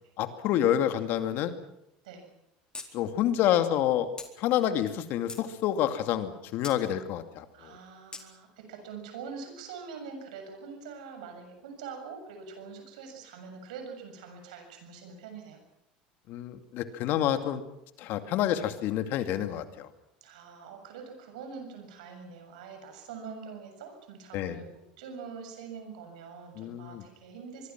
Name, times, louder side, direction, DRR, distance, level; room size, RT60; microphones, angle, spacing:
voice 1, 0.2-1.5 2.9-4.1 4.4-7.7 16.3-17.6 18.0-19.9 24.3-24.6 26.6-27.0, left 11 dB, 60° left, 8 dB, 2.4 m, -28 dB
sound 1, 2.7-2.9 3.2-3.3 4.2-4.3 4.9-5.5 6.6-6.8 8.1-8.3, left 4 dB, 20° left, 4.2 m, -41 dB
voice 2, 7.5-15.6 20.2-24.7 25.0-27.7, right 5 dB, 80° right, 5 dB, 7.2 m, -44 dB
24.0 x 23.5 x 6.1 m, 0.83 s
hypercardioid pair, 85°, 4 cm